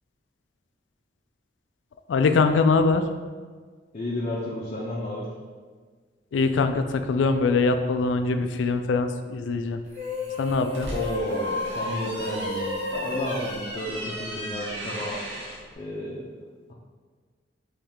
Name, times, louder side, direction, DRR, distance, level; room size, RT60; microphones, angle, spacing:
voice 1, 2.1-3.0 6.3-9.8 10.4-10.9, left 4 dB, 85° left, 8 dB, 0.3 m, -22 dB
voice 2, 3.9-5.3 10.8-15.2 15.8-16.2, left 1 dB, 35° left, -5 dB, 0.6 m, -32 dB
sound 1, 9.9-14.6, left 2 dB, 40° right, 1.3 m, -33 dB
sound 2, 10.5-15.6, equal, 85° right, 1.2 m, -36 dB
3.7 x 3.2 x 4.4 m, 1.5 s
head